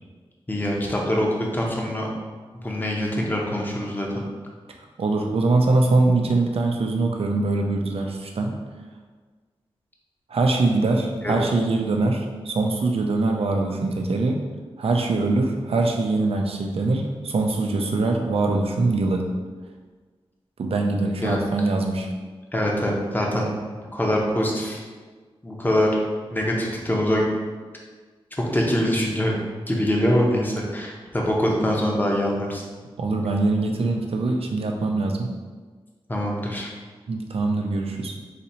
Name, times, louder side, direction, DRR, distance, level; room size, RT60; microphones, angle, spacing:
voice 1, 0.5-2.1 2.6-4.2 11.2-11.3 21.2-21.4 22.5-24.8 25.4-25.9 26.3-27.2 28.4-29.3 29.7-32.6 36.1-36.7, equal, 20° left, -2 dB, 0.8 m, -24 dB
voice 2, 5.0-8.5 10.3-14.4 14.8-19.2 20.6-22.1 33.0-35.3 37.1-38.1, right 3 dB, 75° right, 2 dB, 0.6 m, -23 dB
4.2 x 2.8 x 4.3 m, 1.4 s
wide cardioid pair, 105°, 10 cm